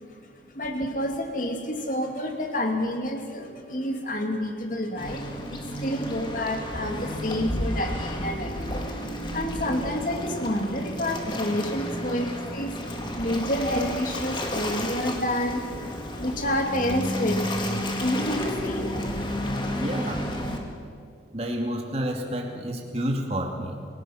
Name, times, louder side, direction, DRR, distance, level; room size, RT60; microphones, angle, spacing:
voice 1, 0.5-12.7 13.2-15.6 16.2-19.1, left 1 dB, 45° left, 4 dB, 2.4 m, -29 dB
Waves surf, 5.0-20.6, left 1 dB, 25° left, 2.2 m, -32 dB
voice 2, 19.7-20.3 21.3-23.9, equal, 35° right, 1 dB, 2.5 m, -30 dB
29.0 x 17.5 x 5.9 m, 2.2 s
head